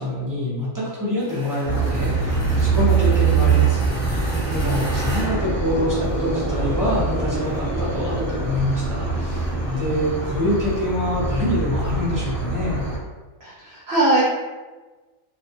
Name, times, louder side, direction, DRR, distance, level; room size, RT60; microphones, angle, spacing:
voice 1, 0.0-12.8, left 1 dB, 25° right, -8 dB, 0.4 m, -25 dB
sound 1, 1.2-6.4, equal, 50° left, 0.8 m, -37 dB
sound 2, 1.6-13.0, right 4 dB, 10° right, 0.9 m, -23 dB
voice 2, 13.4-14.2, right 2 dB, 65° right, -7 dB, 0.7 m, -20 dB
2.4 x 2.3 x 2.7 m, 1.3 s
omnidirectional pair, 1.4 m